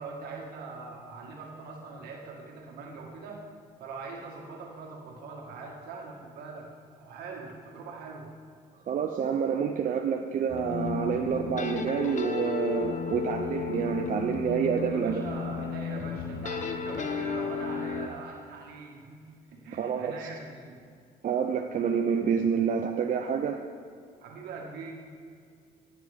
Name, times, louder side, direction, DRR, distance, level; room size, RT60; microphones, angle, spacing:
voice 1, 0.0-3.5 3.8-8.3 14.9-20.8 24.2-24.9, right 4 dB, 75° right, 0 dB, 1.9 m, -42 dB
voice 2, 8.9-15.3 19.7-20.1 21.2-23.6, right 7 dB, 55° right, 4 dB, 0.7 m, -28 dB
sound 1, 10.5-18.1, left 5 dB, 50° left, 1.0 m, -33 dB
17.5 x 7.4 x 3.6 m, 2.2 s
supercardioid pair, 70°, 16 cm